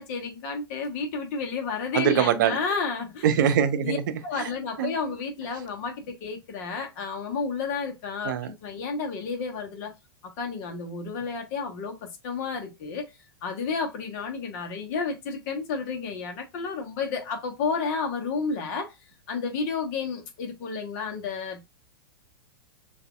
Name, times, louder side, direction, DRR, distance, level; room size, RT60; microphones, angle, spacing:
voice 1, 0.0-3.3 3.8-4.0 4.2-9.9 10.2-13.1 13.4-19.0 19.3-21.7, left 5 dB, 45° left, 1.4 m, -31 dB
voice 2, 1.9-2.6 3.2-4.5 4.8-4.9 8.2-8.5, right 9 dB, 55° right, 0.8 m, -23 dB
6.5 x 2.8 x 2.4 m
figure-of-eight pair, 95°, 12 cm